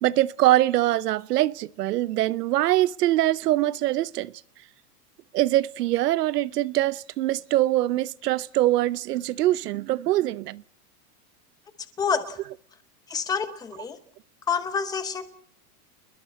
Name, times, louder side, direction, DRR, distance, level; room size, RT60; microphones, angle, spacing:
voice 1, 0.0-4.3 5.3-10.6, right 15 dB, 90° right, 0.8 m, -23 dB
voice 2, 12.0-12.4 13.1-14.0 14.5-15.3, left 6 dB, 10° left, 0.9 m, -27 dB
29.0 x 21.0 x 4.3 m
supercardioid pair, 170°, 46 cm